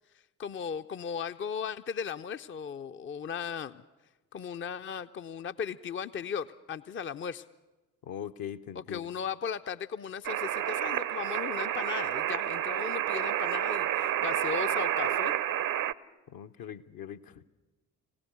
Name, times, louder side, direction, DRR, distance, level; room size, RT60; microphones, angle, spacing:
voice 1, 0.4-3.8 4.3-7.4 8.7-15.3, left 7 dB, 30° left, 11 dB, 0.6 m, -37 dB
voice 2, 8.0-9.1 16.3-17.5, left 9 dB, 55° left, 7 dB, 1.0 m, -41 dB
sound 1, 10.2-15.9, right 11 dB, 50° right, 0.7 m, -30 dB
25.0 x 18.0 x 6.9 m, 1.2 s
figure-of-eight pair, 45°, 42 cm